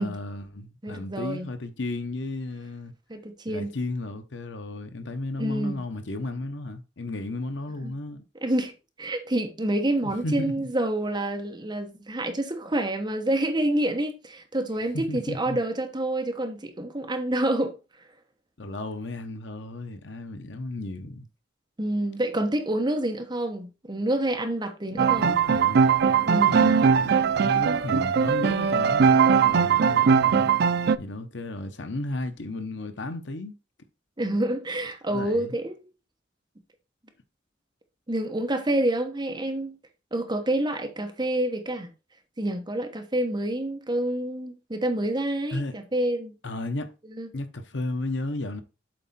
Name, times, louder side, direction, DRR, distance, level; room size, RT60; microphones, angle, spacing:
voice 1, 0.0-2.9 3.5-8.2 10.0-10.5 14.9-15.6 18.6-21.3 24.9-25.9 26.5-30.5 31.0-33.5 35.1-35.5 45.5-45.8 46.4-46.9 47.3-48.6, left 2 dB, 70° left, 0.9 m, -34 dB
voice 2, 0.8-1.5 3.1-3.7 5.4-5.8 7.8-7.9 8.4-8.7 9.0-17.7 21.8-25.4 26.2-26.6 34.2-35.9 38.1-39.8 40.1-41.9 42.4-46.3 47.2-47.3, right 1 dB, 25° right, 1.1 m, -28 dB
sound 1, 25.0-31.0, right 6 dB, 60° right, 0.4 m, -20 dB
7.8 x 4.3 x 4.2 m
head